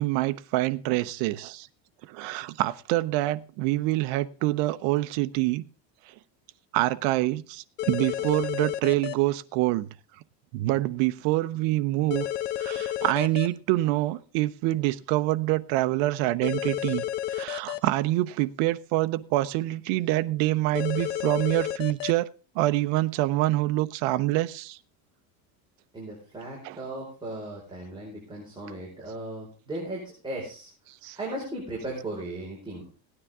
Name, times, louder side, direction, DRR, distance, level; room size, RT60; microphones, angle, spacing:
voice 1, 0.0-1.7 2.1-5.6 6.1-6.2 6.7-9.9 10.5-12.3 12.6-17.0 17.3-22.3 22.5-24.8 26.6-26.8 31.0-31.2, right 17 dB, 65° right, 0.8 m, -26 dB
sound 1, 7.8-9.1 12.1-13.5 16.4-17.8 20.7-22.1, left 12 dB, 65° left, 1.1 m, -31 dB
voice 2, 25.9-30.7 31.2-32.8, right 1 dB, 10° right, 4.7 m, -37 dB
17.5 x 9.8 x 3.6 m
cardioid pair, 135°, 47 cm